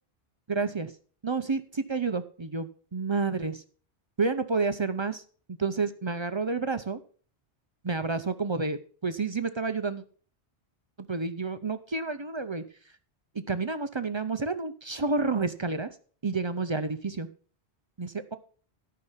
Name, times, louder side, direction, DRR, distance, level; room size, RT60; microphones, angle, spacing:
voice 1, 0.5-0.9 1.2-3.6 4.2-5.2 5.5-7.0 7.8-10.0 11.0-12.6 13.5-15.9 16.2-17.3 18.0-18.4, right 4 dB, 35° right, 10 dB, 0.5 m, -30 dB
13.0 x 5.8 x 5.6 m, 0.43 s
omnidirectional pair, 1.1 m